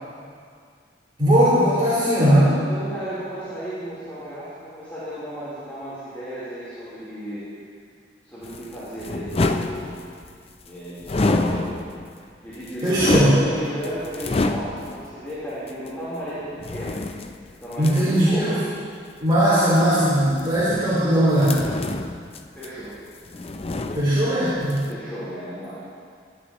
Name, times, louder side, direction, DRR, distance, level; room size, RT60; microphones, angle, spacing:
voice 1, 1.2-2.6 12.8-13.3 17.8-18.6 19.2-21.6 23.9-24.7, equal, 30° right, -12 dB, 3.7 m, -18 dB
voice 2, 2.7-7.4 8.2-10.0 10.6-11.7 12.4-17.0 17.6-18.6 22.5-22.9 24.9-25.8, equal, 10° left, -13 dB, 3.7 m, -34 dB
sound 1, 8.4-10.4 11.0-12.1 12.5-15.1 15.7-15.8 16.6-18.3 19.6-21.0 21.4-23.0 23.2-24.4 24.7-24.9, left 2 dB, 35° left, 0.5 m, -27 dB
21.0 x 11.5 x 3.0 m, 2.1 s
head